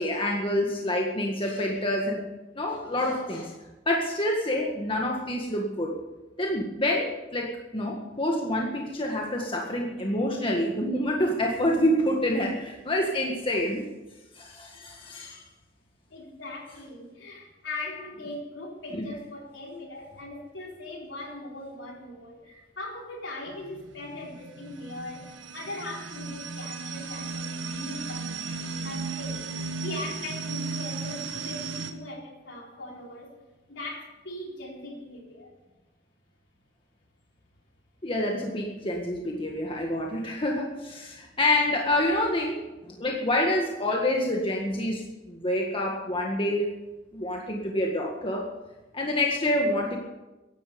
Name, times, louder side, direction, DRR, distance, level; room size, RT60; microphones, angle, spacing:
voice 1, 0.0-2.2 2.5-3.5 3.8-6.0 6.4-13.9 14.3-15.4 18.9-19.0 38.0-46.7 47.1-48.5 48.9-50.0, left 1 dB, 30° left, 0 dB, 1.7 m, -27 dB
voice 2, 16.1-29.5 29.8-33.4 33.7-35.5, left 2 dB, 75° left, -1 dB, 4.1 m, -40 dB
sound 1, 23.5-31.9, right 4 dB, 85° right, 1.6 m, -35 dB
15.5 x 11.5 x 7.0 m, 1.1 s
head